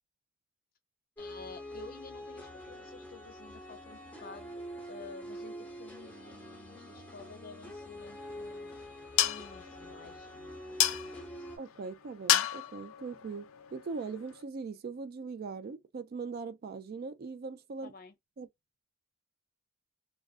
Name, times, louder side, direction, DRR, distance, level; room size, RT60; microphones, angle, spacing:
voice 1, 1.2-8.8 9.2-11.5 17.8-18.1, left 3 dB, 45° left, 0.6 m, -51 dB
sound 1, 1.2-11.6, equal, 5° left, 0.8 m, -45 dB
sound 2, 8.0-14.4, left 12 dB, 90° left, 0.4 m, -34 dB
voice 2, 11.6-17.9 18.4-18.5, right 4 dB, 50° right, 0.3 m, -40 dB
2.3 x 2.2 x 2.4 m
head